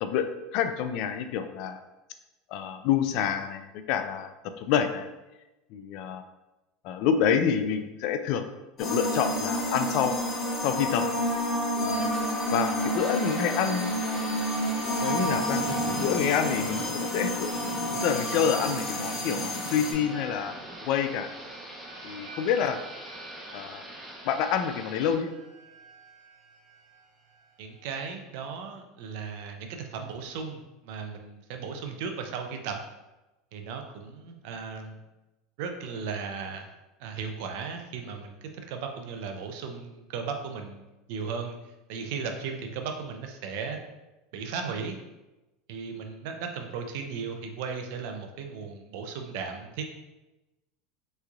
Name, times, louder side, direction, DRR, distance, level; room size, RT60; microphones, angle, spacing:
voice 1, 0.0-1.8 2.5-4.3 4.6-5.1 5.7-6.2 6.8-8.5 8.8-10.2 10.6-11.0 11.8-12.1 12.5-13.9 15.0-15.6 16.0-17.5 18.0-20.5 20.8-21.3 22.0-22.8 23.5-23.9 24.2-25.3, left 8 dB, 60° left, 8 dB, 0.3 m, -27 dB
sound 1, 8.8-19.9, equal, 30° left, 0.8 m, -29 dB
sound 2, 12.5-28.2, right 1 dB, 45° right, 1.3 m, -45 dB
Thunder / Rain, 13.0-25.1, right 1 dB, 10° right, 0.8 m, -41 dB
voice 2, 27.6-32.8 33.5-35.0 35.6-36.7 37.0-40.8 41.1-43.8 44.3-45.0 45.7-49.8, right 5 dB, 70° right, 4 dB, 0.5 m, -36 dB
3.5 x 3.1 x 2.3 m, 1.0 s
supercardioid pair, 110°, 0 cm